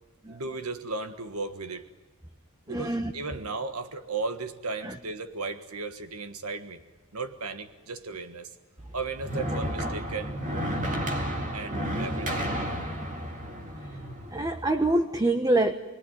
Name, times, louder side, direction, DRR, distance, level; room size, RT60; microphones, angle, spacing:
voice 1, 0.3-1.9 2.7-6.8 7.1-8.6 8.9-10.4 11.5-12.5, right 3 dB, 90° right, 8 dB, 1.6 m, -35 dB
voice 2, 2.7-3.1 4.8-4.9 14.3-15.7, right 2 dB, 15° right, 7 dB, 1.1 m, -25 dB
sound 1, 8.8-14.9, equal, 35° right, 2.3 m, -32 dB
29.5 x 21.5 x 9.4 m, 1.2 s
head